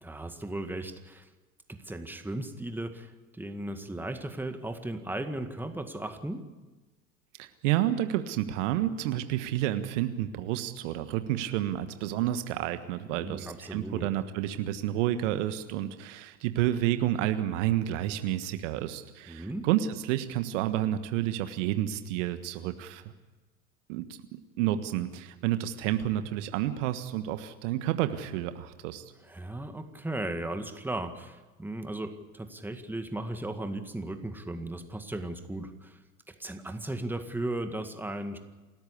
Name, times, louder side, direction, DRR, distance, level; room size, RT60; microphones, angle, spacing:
voice 1, 0.0-1.3 1.7-6.4 13.1-14.1 19.3-19.7 29.2-36.0 36.3-38.4, right 1 dB, 5° right, 7 dB, 1.9 m, -36 dB
voice 2, 7.4-23.0 23.9-29.1, right 12 dB, 60° right, 10 dB, 1.5 m, -30 dB
28.5 x 13.5 x 8.4 m, 1.2 s
hypercardioid pair, 80°, 41 cm